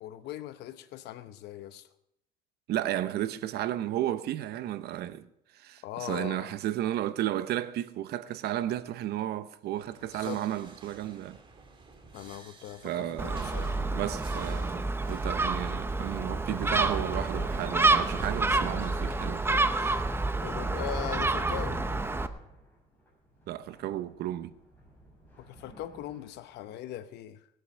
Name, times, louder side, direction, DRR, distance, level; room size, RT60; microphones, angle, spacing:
voice 1, 0.0-1.9 5.8-6.5 10.1-10.4 12.1-13.8 20.4-21.8 25.4-27.5, left 12 dB, 80° left, 0.9 m, -40 dB
voice 2, 2.7-5.3 5.5-11.4 12.8-13.6 13.9-20.0 23.5-24.5, right 12 dB, 70° right, 0.8 m, -33 dB
sound 1, 9.7-20.0, right 3 dB, 30° right, 2.3 m, -53 dB
Gull seagull, 13.2-22.3, right 3 dB, 15° right, 0.7 m, -28 dB
sound 2, 15.2-26.5, right 1 dB, 10° left, 6.4 m, -46 dB
19.5 x 8.0 x 5.5 m
cardioid pair, 110°, 17 cm